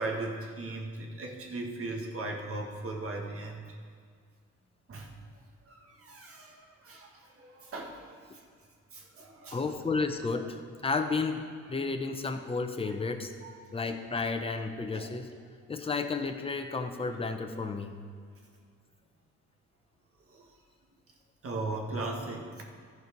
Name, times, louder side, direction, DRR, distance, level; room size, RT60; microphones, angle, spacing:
voice 1, 0.0-3.6 4.9-5.1 5.7-7.1 7.4-8.1 8.9-9.6 13.4-13.6 14.9-15.1 20.3-20.4 21.4-22.6, right 2 dB, 45° right, 1 dB, 1.7 m, -38 dB
voice 2, 9.5-13.3 13.7-15.3 15.7-17.9, left 4 dB, 20° left, 5 dB, 0.8 m, -32 dB
14.0 x 4.7 x 5.3 m, 2.1 s
cardioid pair, 90°, 30 cm